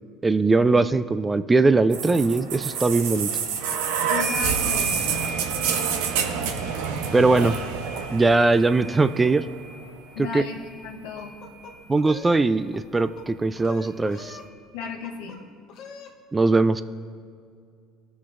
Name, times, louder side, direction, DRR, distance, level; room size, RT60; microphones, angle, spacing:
voice 1, 0.2-3.3 7.1-7.5 8.1-9.5 10.3-10.4 11.9-14.4 16.3-16.8, right 3 dB, 20° right, 13 dB, 0.3 m, -20 dB
sound 1, 1.9-9.8 10.8-10.9, right 6 dB, 85° right, 0.7 m, -28 dB
voice 2, 4.1-5.1 7.3-7.5 10.1-10.6 10.8-11.3 14.7-15.4, left 6 dB, 90° left, 0 dB, 0.8 m, -34 dB
sound 2, 4.2-12.3 13.5-13.6 13.9-15.0, right 2 dB, 35° right, 2.1 m, -39 dB
sound 3, 11.2-12.4 12.7-13.3 13.6-14.5 14.8-15.4 15.7-16.1, left 6 dB, 65° left, 1.2 m, -43 dB
15.5 x 5.9 x 2.5 m, 2.2 s
supercardioid pair, 90°, 0 cm